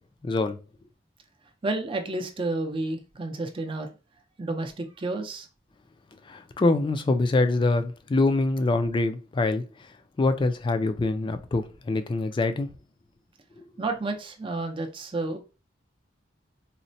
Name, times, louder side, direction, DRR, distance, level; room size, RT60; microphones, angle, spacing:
voice 1, 0.2-0.6 6.2-12.7 13.6-13.7, left 2 dB, 25° left, 0.3 m, -25 dB
voice 2, 1.6-3.9 4.4-5.5 13.8-15.4, right 2 dB, 30° right, 0.5 m, -30 dB
4.0 x 2.1 x 2.6 m
head